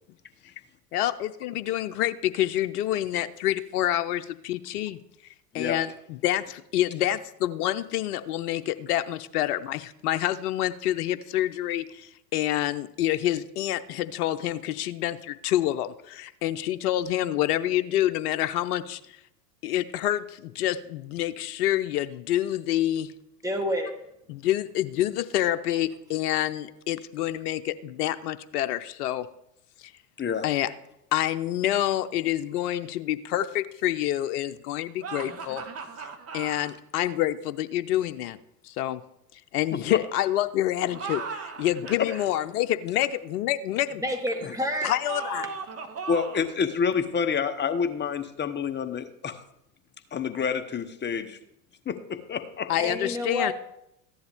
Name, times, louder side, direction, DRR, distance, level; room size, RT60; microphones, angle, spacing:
voice 1, 0.9-5.0 5.5-19.0 19.6-23.1 24.3-29.3 29.8-29.9 30.4-30.7 31.1-35.6 36.3-38.4 38.6-39.0 39.3-44.0 44.8-45.5 52.7-53.5, left 13 dB, 65° left, 10 dB, 0.8 m, -27 dB
voice 2, 23.4-23.9 44.0-44.9 52.8-53.5, equal, 5° right, 6 dB, 1.9 m, -28 dB
voice 3, 30.2-30.5 39.7-39.8 42.0-42.1 44.4-44.5 46.1-49.4 50.1-51.4 51.9-52.7, left 6 dB, 20° left, 8 dB, 1.1 m, -28 dB
sound 1, 35.0-36.7 40.8-42.3 45.0-46.5, right 5 dB, 30° right, 1.5 m, -37 dB
14.5 x 10.5 x 3.6 m, 0.80 s
hypercardioid pair, 85°, 49 cm